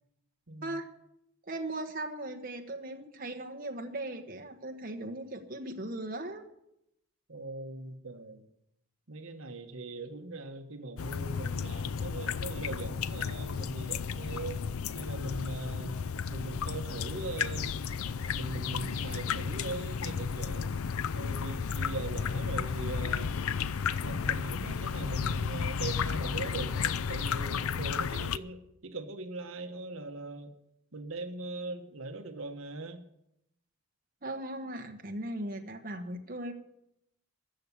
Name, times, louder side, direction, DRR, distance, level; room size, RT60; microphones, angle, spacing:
voice 1, 1.4-6.5 34.2-36.5, right 1 dB, 40° right, 3 dB, 1.2 m, -38 dB
voice 2, 7.3-8.4 9.1-14.6 14.9-16.0 16.3-17.7 18.3-20.8 21.1-23.3 24.0-30.5 30.9-33.0, right 2 dB, 65° right, 7 dB, 1.2 m, -40 dB
sound 1, 11.0-28.4, left 6 dB, 75° left, 0.5 m, -33 dB
14.5 x 7.1 x 9.6 m, 0.81 s
head